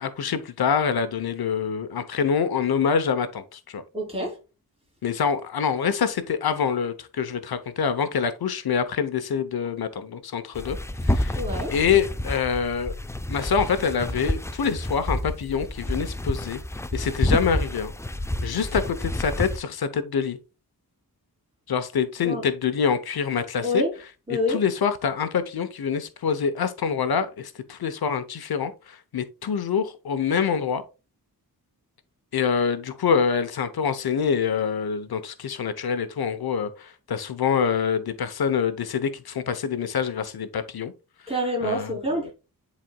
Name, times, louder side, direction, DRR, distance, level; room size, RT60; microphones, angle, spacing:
voice 1, 0.0-3.8 5.0-10.8 11.0-11.4 11.7-12.9 13.3-16.6 16.9-17.9 18.4-20.4 21.7-23.8 24.5-30.8 32.3-40.9 41.6-42.3, left 6 dB, 80° left, 0.9 m, -25 dB
voice 2, 3.9-4.4 11.4-11.7 22.2-22.4 23.6-23.9 24.3-24.6 41.3-42.3, left 1 dB, 15° right, 3.1 m, -26 dB
sound 1, 10.5-19.6, left 1 dB, 10° left, 0.3 m, -29 dB
10.5 x 4.2 x 2.3 m
wide cardioid pair, 160°, 37 cm